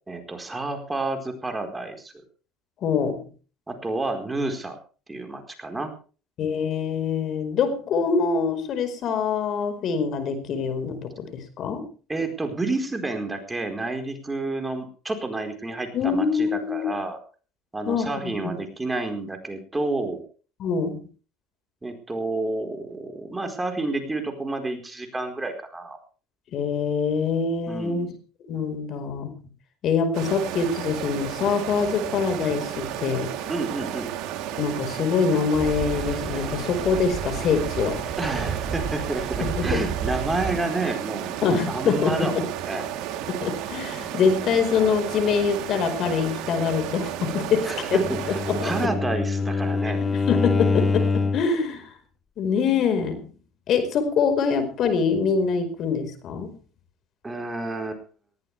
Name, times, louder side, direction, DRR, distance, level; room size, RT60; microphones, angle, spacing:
voice 1, 0.1-2.1 3.7-4.8 5.1-6.0 12.1-17.2 17.7-20.2 21.8-26.0 27.7-28.1 33.5-34.1 38.2-42.9 47.6-50.0 57.2-58.0, right 2 dB, 15° right, 5 dB, 4.5 m, -30 dB
voice 2, 2.8-3.3 6.4-11.9 15.9-16.9 17.9-18.6 20.6-21.1 26.5-28.1 28.4-29.3 29.8-33.4 34.6-38.0 39.4-39.8 41.4-42.4 43.3-48.9 50.1-51.9 52.4-53.3 53.7-56.5, left 5 dB, 50° left, 9 dB, 4.9 m, -24 dB
sound 1, 30.1-48.9, right 11 dB, 70° right, 3.4 m, -33 dB
sound 2, 35.5-40.6, right 5 dB, 30° right, 3.6 m, -32 dB
Bowed string instrument, 47.9-51.6, left 4 dB, 25° left, 1.0 m, -25 dB
19.0 x 17.0 x 3.4 m, 0.38 s
supercardioid pair, 95°, 0 cm